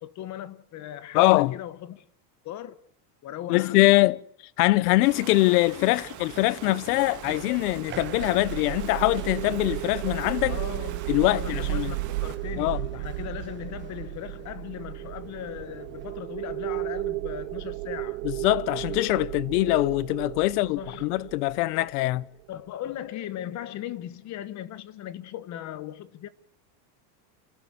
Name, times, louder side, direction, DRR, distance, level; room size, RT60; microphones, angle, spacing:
voice 1, 0.0-2.1 2.4-2.8 3.2-4.1 10.4-18.2 20.5-21.1 22.5-26.3, left 11 dB, 35° left, 1.2 m, -38 dB
voice 2, 1.1-1.6 3.5-4.2 4.6-10.6 11.1-11.9 12.6-12.9 18.2-22.2, left 19 dB, 75° left, 0.8 m, -23 dB
Run, 4.6-16.2, right 9 dB, 25° right, 1.3 m, -46 dB
Water, 5.0-12.3, right 13 dB, 40° right, 2.0 m, -44 dB
sound 1, 7.2-22.4, right 20 dB, 90° right, 0.8 m, -34 dB
29.5 x 12.5 x 8.4 m
supercardioid pair, 145°, 46 cm